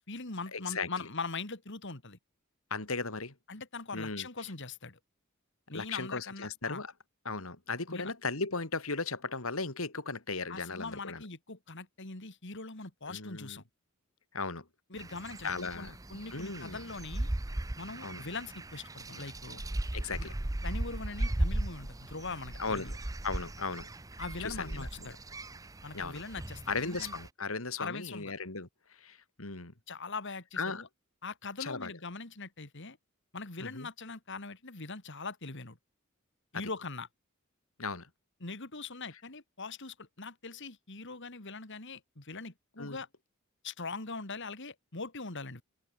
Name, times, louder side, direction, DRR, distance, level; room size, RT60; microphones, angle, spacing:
voice 1, 0.0-2.2 3.5-5.0 5.7-6.8 7.9-8.1 10.5-13.6 14.9-17.3 17.8-19.6 20.1-20.3 20.6-23.0 24.2-25.2 25.8-27.1 27.8-28.3 29.9-30.9 31.2-33.0 33.3-35.8 36.5-37.1 38.4-43.1 43.6-45.6, left 3 dB, 60° left, 3.0 m, -41 dB
voice 2, 0.5-0.9 2.7-3.3 3.9-4.3 5.7-6.9 7.2-11.2 13.1-13.6 14.3-14.6 15.4-15.9 16.3-16.8 18.0-18.2 19.9-20.3 22.6-22.9 23.2-23.9 24.4-24.9 25.9-26.2 26.7-29.7 30.6-30.8 31.6-31.9 33.6-33.9 37.8-38.1 42.8-43.0, left 4 dB, 75° left, 3.1 m, -36 dB
sound 1, 15.0-27.3, right 1 dB, 15° right, 0.7 m, -37 dB
head